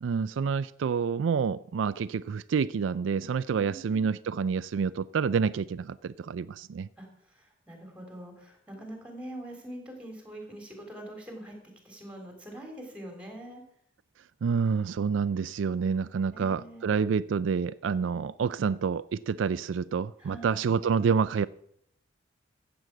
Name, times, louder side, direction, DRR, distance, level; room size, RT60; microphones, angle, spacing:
voice 1, 0.0-6.9 14.4-21.5, right 6 dB, 80° right, 0.4 m, -28 dB
voice 2, 3.5-4.0 7.0-7.1 7.3-11.5 11.8-13.6 16.3-17.0 20.2-20.6, right 1 dB, 5° right, 3.5 m, -44 dB
14.0 x 8.1 x 6.0 m
head